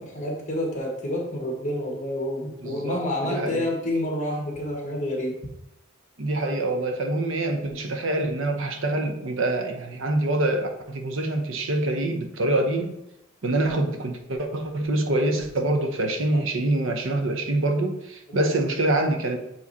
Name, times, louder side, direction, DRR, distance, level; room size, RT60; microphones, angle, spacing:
voice 1, 0.0-5.4 18.3-18.5, left 1 dB, 35° left, -1 dB, 1.5 m, -29 dB
voice 2, 2.6-3.7 6.2-13.0 13.4-19.4, right 2 dB, 65° right, 5 dB, 0.8 m, -25 dB
7.3 x 3.2 x 4.1 m, 0.85 s
head